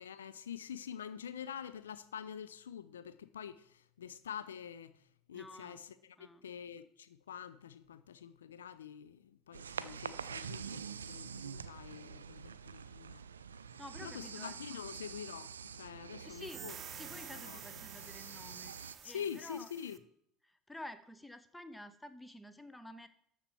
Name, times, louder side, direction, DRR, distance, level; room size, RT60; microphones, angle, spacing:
voice 1, 0.0-5.0 5.3-13.2 14.0-15.5 15.8-16.8 17.3-17.6 19.0-20.0, left 8 dB, 75° left, 0.4 m, -46 dB
voice 2, 5.3-5.8 6.2-6.4 13.8-14.6 16.2-16.6 16.9-19.7 20.4-23.1, left 1 dB, 5° left, 0.8 m, -50 dB
sound 1, 9.5-19.0, right 7 dB, 75° right, 0.4 m, -46 dB
sound 2, 16.3-20.0, right 8 dB, 35° right, 0.6 m, -50 dB
12.5 x 4.3 x 6.9 m
figure-of-eight pair, 65°, 0 cm